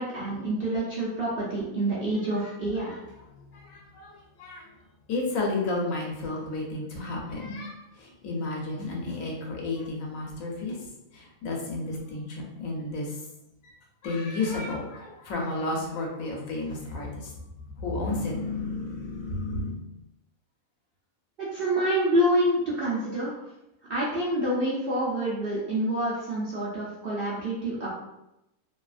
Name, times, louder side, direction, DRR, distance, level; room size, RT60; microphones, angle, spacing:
voice 1, 0.0-3.0 21.5-23.3 23.9-27.9, right 1 dB, 60° right, -7 dB, 0.6 m, -27 dB
voice 2, 3.5-4.7 5.1-10.8 11.1-13.1 13.6-13.7 14.0-17.3 17.8-19.8, left 2 dB, 70° left, -1 dB, 1.0 m, -32 dB
2.7 x 2.4 x 2.3 m, 0.90 s
omnidirectional pair, 1.5 m